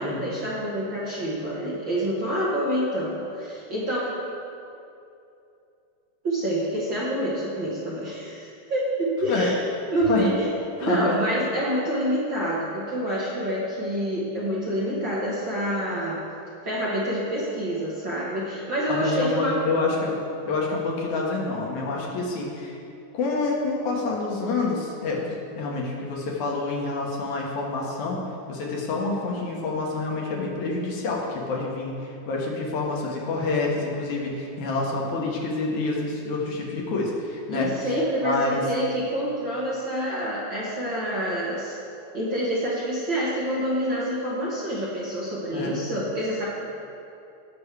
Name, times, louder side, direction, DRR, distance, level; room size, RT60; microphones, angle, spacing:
voice 1, 0.0-4.2 6.2-9.5 9.9-10.5 10.8-16.2 16.6-19.6 37.5-41.8 42.1-46.5, equal, 55° right, -7 dB, 1.5 m, -27 dB
voice 2, 10.8-11.2 18.9-20.2 20.5-22.8 23.1-28.2 28.5-37.7 38.2-38.7 45.5-45.8, left 3 dB, 70° left, -2 dB, 2.5 m, -27 dB
17.5 x 6.1 x 3.3 m, 2.7 s
omnidirectional pair, 3.7 m